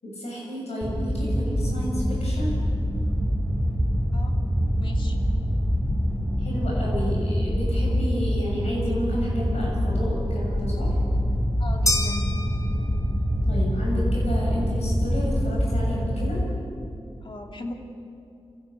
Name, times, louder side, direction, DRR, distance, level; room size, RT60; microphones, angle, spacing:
voice 1, 0.0-2.6 6.4-10.9 13.5-16.4, equal, 85° left, -3 dB, 7.4 m, -31 dB
sound 1, 0.8-16.4, equal, ahead, 3.5 m, -25 dB
voice 2, 4.8-5.2 11.6-12.2 17.2-17.7, left 2 dB, 50° left, 2 dB, 2.5 m, -38 dB
sound 2, 11.9-13.3, left 1 dB, 30° left, 3.5 m, -28 dB
26.5 x 15.5 x 7.0 m, 2.6 s
cardioid pair, 50°, 11 cm